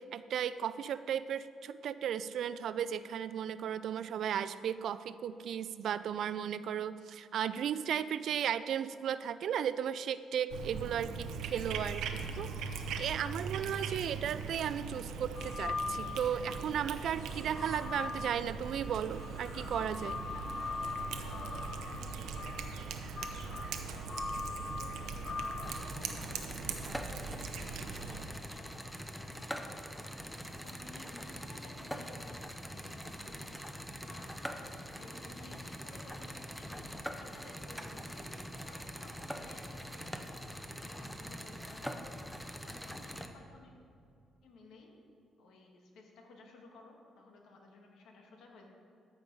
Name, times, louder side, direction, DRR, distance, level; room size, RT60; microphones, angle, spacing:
voice 1, 0.0-20.2, right 9 dB, 70° right, 14 dB, 0.3 m, -35 dB
Cat, 10.5-28.3, right 5 dB, 85° right, 0.7 m, -41 dB
sound 1, 15.4-16.6 17.2-25.8, left 4 dB, 40° left, 1.1 m, -41 dB
voice 2, 20.3-22.4 23.4-25.4 25.8-30.0 30.4-33.6 34.0-38.3 38.6-40.1 40.6-41.9 42.6-43.7 44.4-44.9 45.4-48.7, left 2 dB, 80° left, 0 dB, 1.7 m, -56 dB
sound 2, 25.6-43.3, equal, 5° left, 0.7 m, -43 dB
13.5 x 4.8 x 5.4 m, 2.4 s
cardioid pair, 90°, 0 cm